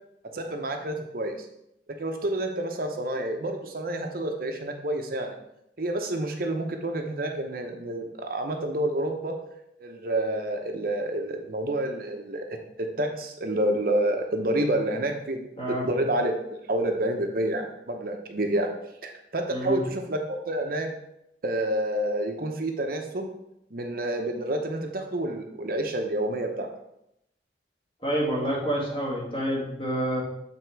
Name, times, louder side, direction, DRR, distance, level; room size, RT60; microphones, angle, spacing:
voice 1, 0.3-1.5 1.9-5.3 5.8-9.3 9.8-15.4 15.8-18.7 19.0-20.9 21.4-23.3 23.7-26.7, right 1 dB, 55° right, 4 dB, 0.8 m, -29 dB
voice 2, 19.5-19.8 28.0-30.2, equal, 30° left, -4 dB, 2.0 m, -28 dB
8.0 x 3.7 x 4.6 m, 0.81 s
head